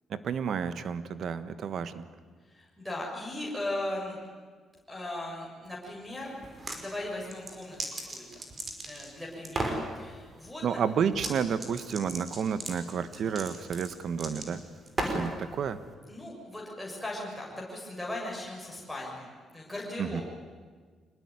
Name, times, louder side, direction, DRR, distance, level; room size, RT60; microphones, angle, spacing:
voice 1, 0.1-2.0 10.6-14.6 15.0-15.8 20.0-20.2, right 7 dB, 60° right, 12 dB, 1.4 m, -31 dB
voice 2, 2.5-4.2 4.9-6.3 6.7-7.8 8.1-8.2 8.8-10.8 13.2-13.4 16.1-19.3 19.5-20.2, left 1 dB, ahead, -4 dB, 6.5 m, -38 dB
sound 1, 6.4-6.8 7.2-9.1 9.4-9.8 11.1-11.3 11.6-15.3, right 2 dB, 35° right, 4.9 m, -35 dB
25.5 x 19.5 x 9.8 m, 1.5 s
cardioid pair, 90°, 0 cm